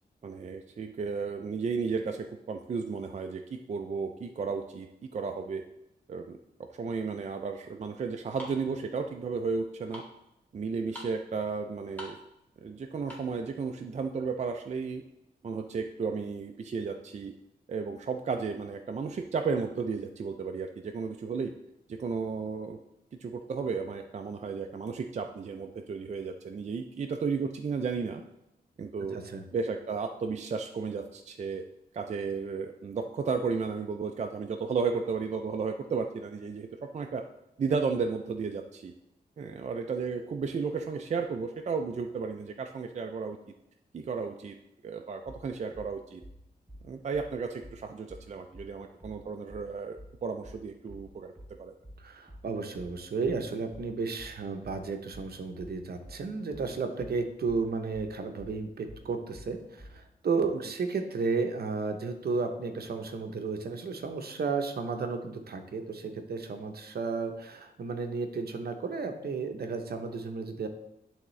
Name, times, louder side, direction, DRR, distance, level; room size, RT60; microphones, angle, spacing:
voice 1, 0.2-4.9 5.1-5.6 6.1-6.4 6.7-10.0 10.5-12.2 12.6-15.0 15.4-17.3 17.7-21.5 21.9-22.8 23.2-28.2 28.8-29.2 29.5-31.6 31.9-37.2 37.6-38.9 39.4-43.4 43.9-44.6 44.8-46.2 46.8-51.3 51.6-51.7, right 5 dB, 45° right, 5 dB, 0.4 m, -33 dB
sound 1, 7.2-13.4, equal, 10° left, 1.9 m, -48 dB
sound 2, 45.3-60.0, equal, 10° right, 0.8 m, -49 dB
voice 2, 52.0-70.7, right 4 dB, 65° right, 6 dB, 0.8 m, -33 dB
10.5 x 3.5 x 3.2 m, 0.85 s
wide cardioid pair, 105°, 17 cm